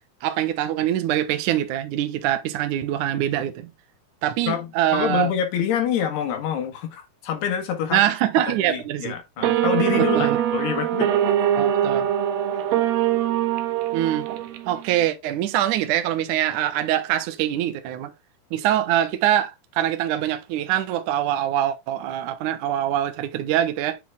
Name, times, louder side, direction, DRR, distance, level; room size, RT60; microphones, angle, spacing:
voice 1, 0.2-3.7 4.2-5.3 7.9-9.2 10.0-10.4 11.6-12.1 13.9-14.3 14.7-18.1 18.5-24.0, right 12 dB, 65° right, 2.1 m, -24 dB
voice 2, 4.5-8.0 8.5-11.1, left 8 dB, 85° left, 3.7 m, -26 dB
sound 1, 9.4-14.9, right 11 dB, 90° right, 2.9 m, -22 dB
9.5 x 4.1 x 3.5 m
omnidirectional pair, 4.6 m